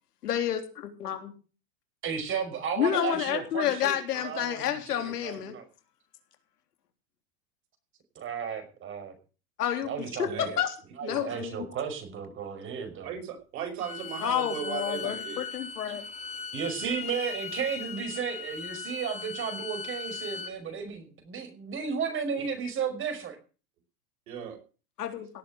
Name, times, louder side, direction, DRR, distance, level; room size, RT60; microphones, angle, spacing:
voice 1, 0.2-1.3 2.8-5.6 9.6-9.9 10.2-10.8 11.0-11.6 14.2-16.0 25.0-25.3, left 10 dB, 85° left, 6 dB, 3.6 m, -29 dB
voice 2, 2.0-4.0 4.2-5.6 8.2-9.2 9.8-10.5 11.0-13.1 16.5-23.4, right 6 dB, 25° right, 7 dB, 5.5 m, -34 dB
voice 3, 10.3-10.6 13.0-15.4 22.4-22.5 24.3-24.6, right 8 dB, 70° right, 6 dB, 6.1 m, -36 dB
Bowed string instrument, 13.8-20.5, left 5 dB, 15° left, 2.1 m, -39 dB
17.5 x 7.9 x 7.7 m, 0.37 s
supercardioid pair, 135°, 45 cm